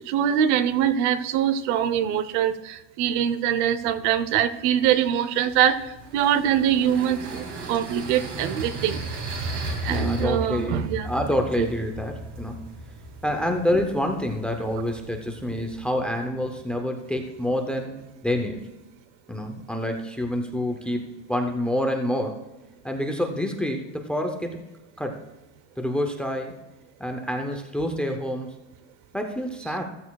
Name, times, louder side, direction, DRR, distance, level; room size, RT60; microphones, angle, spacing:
voice 1, 0.1-5.9 6.1-9.0 9.8-11.2 11.6-11.7, right 9 dB, 65° right, 15 dB, 0.8 m, -23 dB
sound 1, 5.5-15.9, right 2 dB, 45° right, 2.4 m, -35 dB
voice 2, 9.9-12.6 13.2-17.9 18.2-18.6 19.3-22.4 22.8-24.6 25.0-25.2 25.8-26.5 27.0-28.5 29.1-29.8, left 1 dB, 5° left, 4 dB, 0.5 m, -27 dB
14.5 x 14.5 x 2.3 m, 1.0 s
cardioid pair, 175°, 38 cm